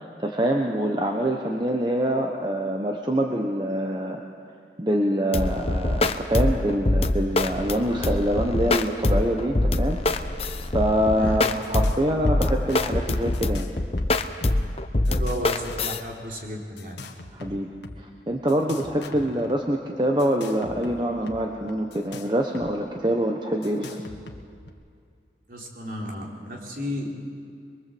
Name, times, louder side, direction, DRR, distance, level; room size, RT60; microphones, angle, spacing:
voice 1, 0.0-4.2 4.8-10.0 10.7-13.7 17.4-17.7 18.0-24.0, right 1 dB, 25° right, 2 dB, 1.2 m, -25 dB
sound 1, 5.3-16.0, left 2 dB, 35° left, 0.9 m, -24 dB
sound 2, 11.0-11.1 11.4-12.0 12.3-12.8 13.3-14.7 15.0-16.0 16.8-18.0 18.5-19.5 20.2-22.7 23.0-23.1 23.6-24.7, left 2 dB, 85° left, 1.6 m, -42 dB
voice 2, 15.1-17.0 25.5-27.1, left 1 dB, 50° right, -1 dB, 3.7 m, -33 dB
23.0 x 22.5 x 7.9 m, 2.3 s
head